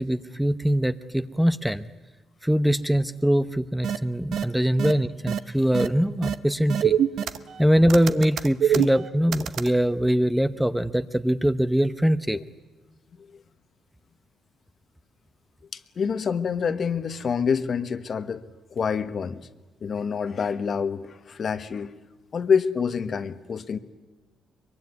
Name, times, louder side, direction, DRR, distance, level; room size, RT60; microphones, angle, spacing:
voice 1, 0.0-1.8 2.4-7.0 7.6-12.4, equal, 5° right, 12 dB, 0.8 m, -22 dB
sound 1, 3.8-4.0 4.3-4.4 4.8-4.9 5.3-5.4 5.7-5.9 6.2-6.3 6.7-7.6 7.9-9.7, right 9 dB, 70° right, 0.9 m, -24 dB
voice 2, 15.7-18.4 18.7-19.5 19.8-21.9 22.3-23.8, left 6 dB, 50° left, 11 dB, 1.3 m, -27 dB
23.5 x 23.0 x 9.6 m, 1.2 s
cardioid pair, 90°, 0 cm